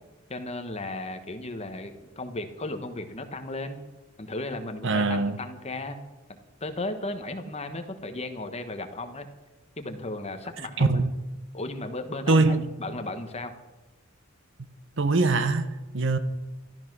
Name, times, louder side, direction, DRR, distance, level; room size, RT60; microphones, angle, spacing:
voice 1, 0.3-3.8 4.2-6.0 6.6-9.3 9.8-11.0 11.5-13.5, left 2 dB, 30° left, 1.3 m, -35 dB
voice 2, 4.8-5.4 10.8-11.1 12.3-12.6 15.0-16.2, right 3 dB, 65° right, 1.0 m, -23 dB
13.5 x 13.0 x 6.2 m
head